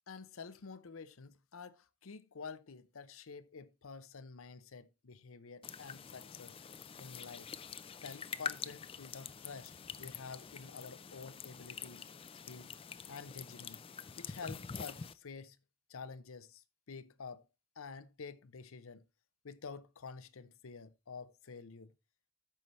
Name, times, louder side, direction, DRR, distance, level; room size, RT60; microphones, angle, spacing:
voice 1, 0.1-6.6 7.0-7.5 8.0-9.7 10.0-12.1 12.4-12.7 13.1-13.8 14.2-15.6 15.9-17.4 17.8-19.0 19.4-21.9, left 5 dB, 70° left, 0.7 m, -49 dB
sound 1, 5.6-15.1, left 6 dB, 25° left, 0.4 m, -46 dB
13.0 x 5.6 x 3.1 m
head